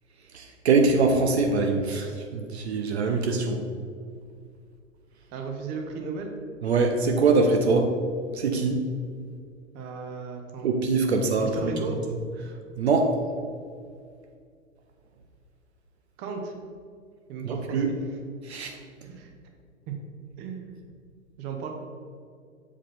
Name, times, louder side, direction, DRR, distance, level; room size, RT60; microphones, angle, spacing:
voice 1, 0.3-3.6 6.6-7.9 8.3-8.8 10.6-11.7 12.8-13.2 17.4-17.9 18.5-18.8, right 3 dB, 55° right, 4 dB, 0.8 m, -23 dB
voice 2, 5.3-6.3 9.7-10.7 11.4-12.0 16.2-16.5 17.3-18.0 19.0-19.3 19.9-20.0 20.4-20.8 21.4-21.7, right 5 dB, 25° right, 3 dB, 0.9 m, -35 dB
7.3 x 4.9 x 4.2 m, 2.2 s
figure-of-eight pair, 105°, 38 cm